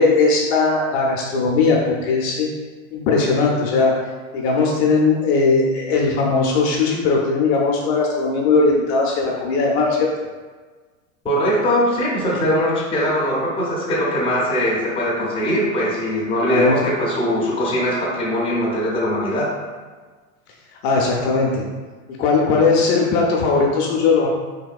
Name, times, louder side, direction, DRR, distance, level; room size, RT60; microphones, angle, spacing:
voice 1, 0.0-2.5 2.9-3.9 4.3-10.1 16.5-16.8 20.8-21.6 22.2-24.3, left 4 dB, 55° left, -2 dB, 0.6 m, -18 dB
voice 2, 11.2-19.5, equal, 15° left, -5 dB, 0.6 m, -21 dB
3.4 x 2.2 x 2.3 m, 1.4 s
hypercardioid pair, 110°, 41 cm